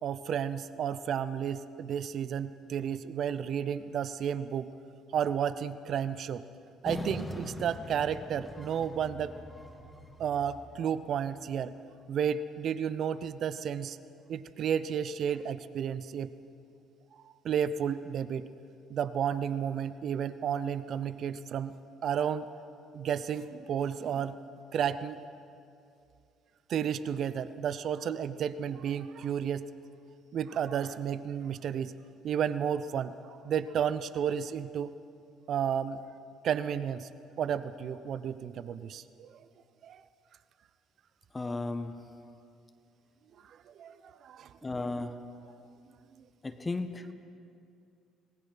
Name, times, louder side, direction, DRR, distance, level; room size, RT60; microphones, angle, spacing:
voice 1, 0.0-4.7 5.1-6.4 6.8-9.4 10.2-11.7 12.1-14.0 14.3-16.3 17.4-18.4 18.9-21.8 22.0-22.5 22.9-24.3 24.7-25.2 26.7-29.7 30.3-31.9 32.2-34.9 35.5-36.0 36.4-37.1 37.4-39.4 39.8-40.0 43.4-44.5, right 8 dB, 55° right, 15 dB, 0.7 m, -32 dB
sound 1, 6.9-11.4, left 1 dB, 5° left, 2.3 m, -42 dB
voice 2, 41.3-42.0 44.6-45.2 46.4-47.1, left 3 dB, 25° left, 8 dB, 1.5 m, -34 dB
26.0 x 19.5 x 5.9 m, 2.5 s
figure-of-eight pair, 50°, 0 cm